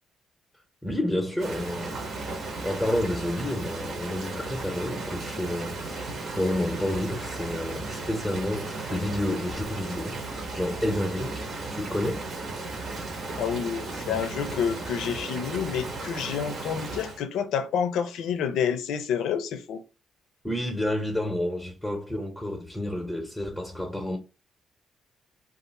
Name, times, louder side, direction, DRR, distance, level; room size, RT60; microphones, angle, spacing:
voice 1, 0.8-2.0 2.6-10.2 10.5-12.2 20.4-24.2, left 1 dB, 5° left, 0.7 m, -30 dB
Rain, 1.4-17.2, right 3 dB, 55° right, 1.0 m, -35 dB
voice 2, 13.4-19.8, left 7 dB, 85° left, 0.4 m, -29 dB
2.6 x 2.4 x 4.0 m
cardioid pair, 90°, 0 cm